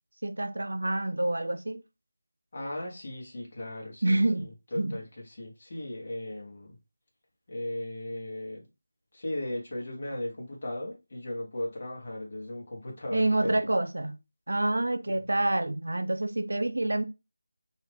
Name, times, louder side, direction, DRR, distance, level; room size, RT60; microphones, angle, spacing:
voice 1, 0.2-1.8 4.0-4.5 4.8-5.0 13.1-14.2 14.5-17.0, right 1 dB, 90° right, 0.4 m, -27 dB
voice 2, 2.5-6.8 7.5-8.6 9.1-13.7 15.1-15.2, left 1 dB, 35° left, 0.9 m, -37 dB
2.4 x 2.3 x 3.3 m
figure-of-eight pair, 175°, 0 cm